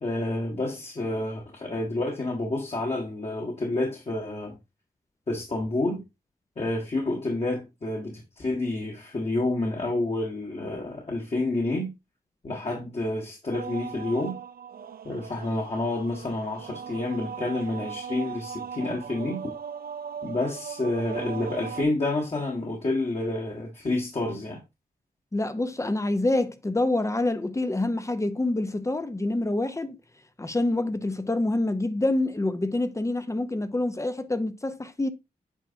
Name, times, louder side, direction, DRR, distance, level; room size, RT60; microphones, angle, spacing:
voice 1, 0.0-4.6 5.3-6.0 6.6-11.9 12.4-14.4 15.0-19.5 20.2-24.6, left 2 dB, 40° left, 1.6 m, -29 dB
sound 1, 13.5-21.8, right 7 dB, 70° right, 0.5 m, -39 dB
voice 2, 25.3-30.0 30.4-35.1, left 2 dB, 20° left, 0.7 m, -26 dB
8.9 x 4.9 x 2.8 m
wide cardioid pair, 95°, 16 cm